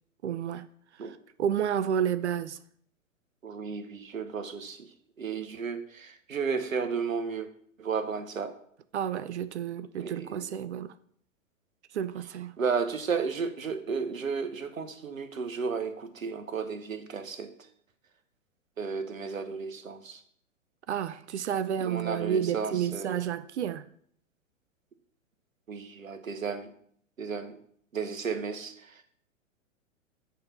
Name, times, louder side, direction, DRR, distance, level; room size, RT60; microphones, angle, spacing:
voice 1, 0.2-0.7 1.0-2.6 8.9-10.9 11.9-12.6 20.9-23.9, right 9 dB, 60° right, 0.5 m, -31 dB
voice 2, 3.4-4.9 5.2-7.5 7.8-8.6 10.0-10.5 12.6-17.5 18.8-20.2 21.8-23.2 25.7-26.7 27.2-27.6 27.9-29.0, right 5 dB, 75° right, 1.1 m, -33 dB
8.4 x 4.1 x 5.9 m
figure-of-eight pair, 110°, 40 cm